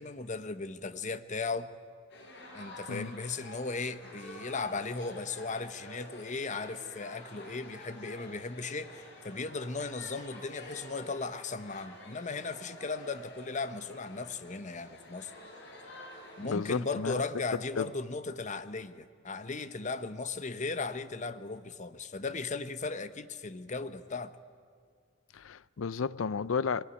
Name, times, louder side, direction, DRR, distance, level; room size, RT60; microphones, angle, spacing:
voice 1, 0.0-1.7 2.5-15.3 16.4-24.3, left 3 dB, 40° left, 0.9 m, -37 dB
sound 1, 2.1-16.8, left 1 dB, 60° left, 4.7 m, -49 dB
voice 2, 16.4-17.2 17.7-17.9 25.3-26.8, left 5 dB, 80° left, 0.5 m, -32 dB
23.5 x 18.0 x 9.9 m
head